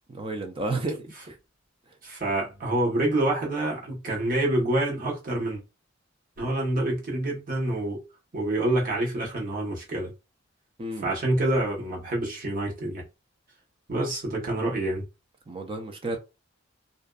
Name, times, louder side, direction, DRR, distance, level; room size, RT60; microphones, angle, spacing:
voice 1, 0.1-1.4 1.9-2.0 10.8-11.1 15.5-16.2, right 2 dB, 30° right, 0.4 m, -32 dB
voice 2, 2.0-5.6 6.4-8.0 8.3-10.1 11.0-13.0 13.9-15.0, right 1 dB, 45° right, 1.1 m, -27 dB
2.5 x 2.2 x 2.3 m
head